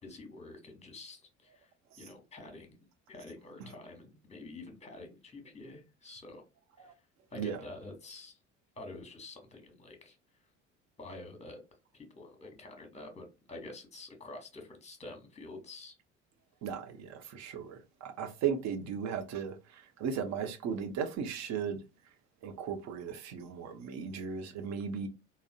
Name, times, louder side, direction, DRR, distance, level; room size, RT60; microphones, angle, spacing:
voice 1, 0.0-1.7 2.0-2.8 3.1-6.4 6.8-6.9 7.3-8.4 8.8-10.2 11.0-11.6 11.9-16.0, left 2 dB, 20° left, 1.1 m, -48 dB
voice 2, 16.6-21.8 22.4-25.1, right 7 dB, 45° right, 0.7 m, -36 dB
3.6 x 2.1 x 2.2 m
figure-of-eight pair, 60°, 36 cm